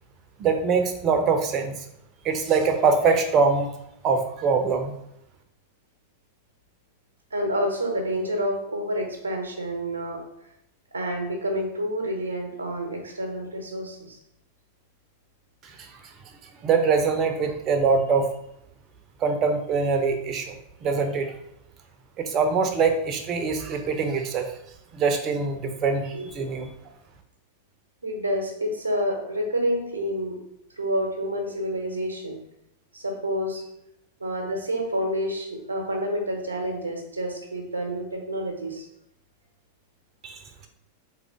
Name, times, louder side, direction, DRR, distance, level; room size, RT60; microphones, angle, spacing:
voice 1, 0.4-1.7 2.2-3.7 4.0-4.9 16.6-18.3 19.2-20.5 20.8-21.3 22.2-24.5 24.9-26.7 40.2-40.4, right 5 dB, 30° right, 6 dB, 0.7 m, -23 dB
voice 2, 7.3-10.2 10.9-14.2 26.1-26.3 28.0-30.4 30.8-32.4 32.9-33.6 34.2-38.9, equal, 80° right, 2 dB, 0.9 m, -28 dB
3.7 x 3.7 x 3.6 m, 0.80 s
figure-of-eight pair, 90°, 0 cm